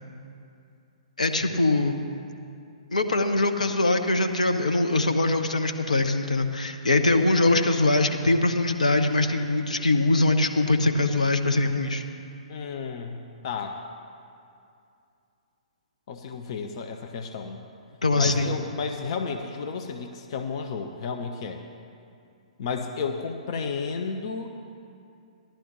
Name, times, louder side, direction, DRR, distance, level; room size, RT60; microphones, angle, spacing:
voice 1, 1.2-1.9 2.9-12.0 18.0-18.6, left 2 dB, 75° left, 6 dB, 0.9 m, -22 dB
voice 2, 12.5-13.8 16.1-17.6 18.2-21.6 22.6-24.5, left 5 dB, 45° left, 5 dB, 0.7 m, -32 dB
17.0 x 11.5 x 3.1 m, 2.5 s
figure-of-eight pair, 120°, 4 cm